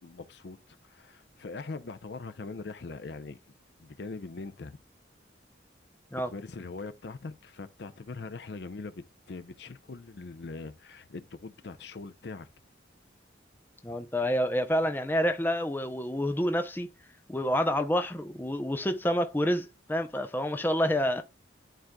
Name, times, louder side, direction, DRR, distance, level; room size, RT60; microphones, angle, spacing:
voice 1, 0.0-3.4 3.8-4.8 6.1-12.5, left 3 dB, 60° left, 0.5 m, -42 dB
voice 2, 13.8-16.9 17.3-21.2, equal, 10° left, 0.5 m, -28 dB
11.5 x 3.9 x 2.2 m
head